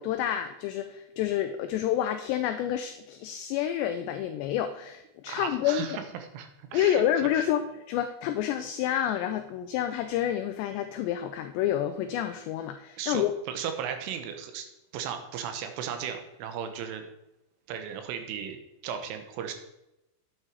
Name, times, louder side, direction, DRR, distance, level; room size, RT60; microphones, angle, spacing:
voice 1, 0.0-6.0 6.7-13.3, left 11 dB, 90° left, 9 dB, 2.4 m, -29 dB
voice 2, 5.3-6.0 6.3-7.5 13.0-14.7 14.9-17.1 17.7-19.5, right 8 dB, 80° right, 7 dB, 3.6 m, -36 dB
9.9 x 9.0 x 4.8 m, 0.90 s
omnidirectional pair, 5.7 m